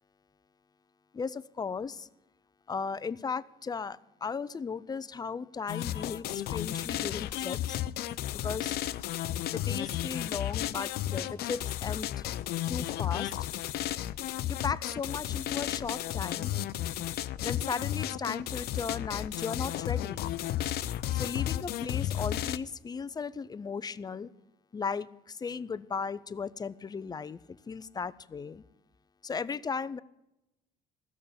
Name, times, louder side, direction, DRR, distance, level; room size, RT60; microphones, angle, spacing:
voice 1, 1.1-2.1 2.7-7.8 8.4-8.8 9.5-12.3 12.7-13.4 14.0-14.2 14.5-16.5 17.4-20.3 21.1-24.3 24.7-27.4 27.7-28.6 29.2-30.0, left 5 dB, 25° left, 0.5 m, -36 dB
sound 1, 5.7-22.6, left 12 dB, 70° left, 0.5 m, -33 dB
14.5 x 7.1 x 8.6 m
cardioid pair, 110°, 17 cm